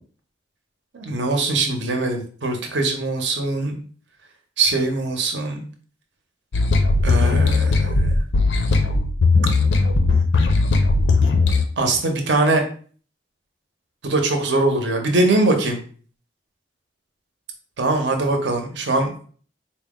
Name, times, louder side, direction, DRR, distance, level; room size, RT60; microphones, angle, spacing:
voice 1, 0.9-3.8 4.6-5.6 7.0-8.2 11.8-12.6 14.0-15.8 17.8-19.2, right 2 dB, 70° right, 3 dB, 0.7 m, -22 dB
sound 1, 6.5-11.6, left 3 dB, 75° left, 0.5 m, -18 dB
4.2 x 2.0 x 3.6 m, 0.43 s
head